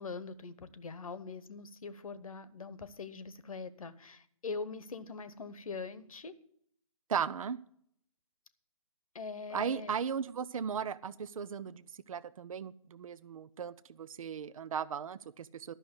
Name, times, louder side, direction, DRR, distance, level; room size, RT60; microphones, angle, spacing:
voice 1, 0.0-6.3 9.1-9.9, left 4 dB, 70° left, 15 dB, 1.1 m, -42 dB
voice 2, 7.1-7.6 9.5-15.7, right 7 dB, 70° right, 17 dB, 0.6 m, -37 dB
11.5 x 6.3 x 8.0 m, 0.66 s
hypercardioid pair, 145°, 18 cm